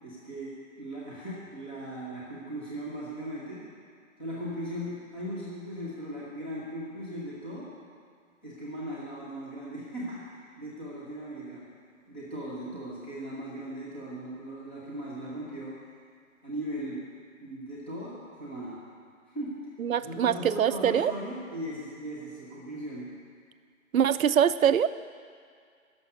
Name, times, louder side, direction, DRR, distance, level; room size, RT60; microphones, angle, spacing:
voice 1, 0.0-3.6 4.2-7.7 8.4-11.6 12.1-15.7 16.4-17.0 17.4-18.8 19.3-19.7 20.0-23.1, equal, 10° left, -7 dB, 0.8 m, -38 dB
voice 2, 19.8-21.1 23.9-24.9, right 9 dB, 80° right, 13 dB, 0.7 m, -23 dB
12.0 x 6.9 x 9.4 m, 2.2 s
hypercardioid pair, 170°, 41 cm